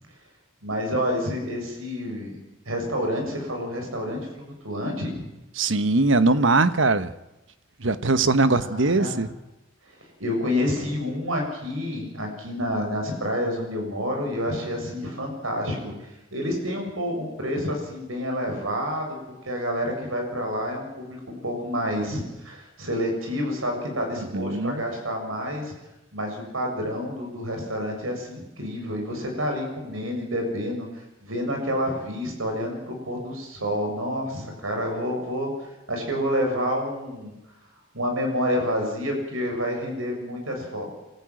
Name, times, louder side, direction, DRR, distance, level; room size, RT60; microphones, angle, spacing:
voice 1, 0.6-2.4 2.7-5.3 8.5-9.2 10.2-15.9 16.3-25.7 26.1-30.9 31.2-37.3 37.9-40.9, equal, 85° right, 2 dB, 7.0 m, -29 dB
voice 2, 5.6-7.1 7.8-9.3 24.3-24.8, right 3 dB, 65° right, 12 dB, 1.2 m, -21 dB
27.0 x 14.0 x 9.1 m, 1.0 s
head